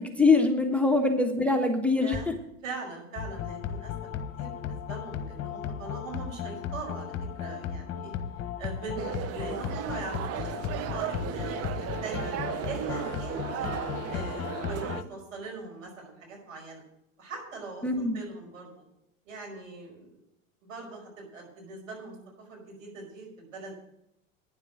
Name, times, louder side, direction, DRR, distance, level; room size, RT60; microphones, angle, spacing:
voice 1, 0.0-2.2 17.8-18.2, left 3 dB, 5° left, 5 dB, 1.3 m, -23 dB
voice 2, 2.0-2.3 2.6-8.1 8.6-12.3 12.7-13.7 14.1-16.8 17.2-17.9 18.1-18.8 19.3-20.2 20.6-22.2 22.5-23.8, right 4 dB, 75° right, 0 dB, 5.4 m, -41 dB
sound 1, 3.2-15.0, left 8 dB, 40° left, 1.3 m, -35 dB
sound 2, 9.0-15.0, right 12 dB, 40° right, 0.7 m, -35 dB
10.0 x 7.3 x 8.9 m, 0.81 s
hypercardioid pair, 85°, 39 cm